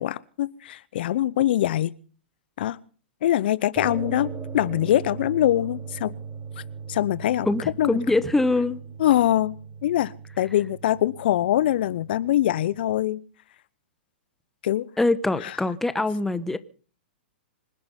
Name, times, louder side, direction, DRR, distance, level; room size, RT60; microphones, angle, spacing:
voice 1, 0.0-1.9 2.6-2.8 3.2-6.1 6.9-7.5 7.8-8.0 9.0-9.5 9.8-13.2 14.6-14.8 15.4-15.5, left 13 dB, 60° left, 0.8 m, -23 dB
sound 1, 3.8-12.9, right 6 dB, 20° right, 4.4 m, -39 dB
voice 2, 7.4-8.8 15.0-16.6, left 2 dB, 5° left, 1.2 m, -23 dB
26.0 x 9.7 x 5.6 m
hypercardioid pair, 120°, 6 cm